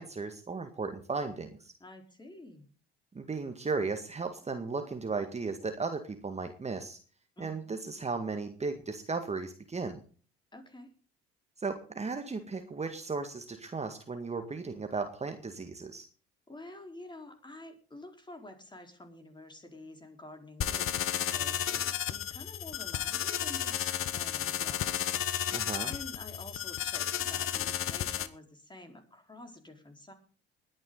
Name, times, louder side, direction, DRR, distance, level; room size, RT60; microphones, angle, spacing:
voice 1, 0.0-1.7 3.1-7.0 7.4-10.0 11.6-16.1 25.5-25.9, right 4 dB, 20° right, 6 dB, 1.9 m, -35 dB
voice 2, 1.8-2.7 7.4-7.7 10.5-10.9 16.5-30.1, left 1 dB, 15° left, 4 dB, 4.2 m, -49 dB
sound 1, 20.6-28.3, left 10 dB, 45° left, 1.2 m, -33 dB
20.5 x 9.8 x 4.0 m, 0.40 s
hypercardioid pair, 65°, 30 cm